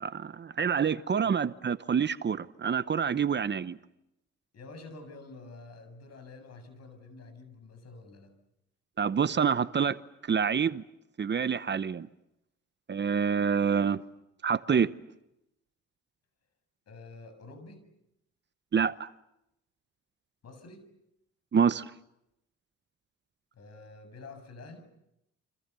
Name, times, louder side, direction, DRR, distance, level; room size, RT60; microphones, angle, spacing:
voice 1, 0.0-3.8 9.0-10.8 11.2-12.1 12.9-14.0 14.4-14.9 18.7-19.1 21.5-21.9, right 7 dB, 35° right, 0.9 m, -27 dB
voice 2, 4.5-8.3 16.9-17.8 20.4-20.8 23.5-24.9, left 3 dB, 55° left, 7.8 m, -48 dB
30.0 x 26.0 x 7.0 m
cardioid pair, 90°, 30 cm